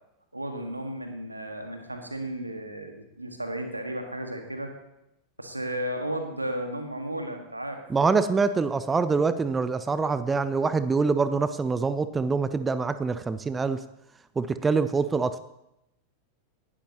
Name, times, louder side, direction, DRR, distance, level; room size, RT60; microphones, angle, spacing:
voice 1, 0.3-4.7 5.4-7.8, right 1 dB, 85° right, 5 dB, 1.6 m, -34 dB
voice 2, 7.9-13.8 14.4-15.4, right 4 dB, 15° right, 13 dB, 0.5 m, -25 dB
18.5 x 11.5 x 2.9 m, 0.87 s
figure-of-eight pair, 90°, 0 cm